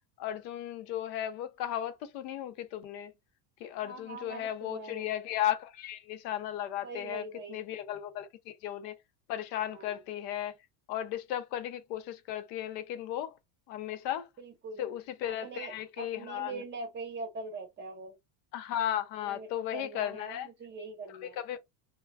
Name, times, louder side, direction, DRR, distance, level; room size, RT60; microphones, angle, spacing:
voice 1, 0.2-3.1 3.6-9.0 9.3-10.6 10.9-13.4 13.7-14.3 14.8-16.6 18.5-20.5 21.2-21.6, left 11 dB, 85° left, 0.7 m, -35 dB
voice 2, 3.8-5.1 6.8-7.6 9.6-10.0 14.4-14.9 15.3-18.2 19.2-21.4, right 3 dB, 20° right, 0.8 m, -43 dB
2.3 x 2.3 x 3.2 m
supercardioid pair, 140°, 48 cm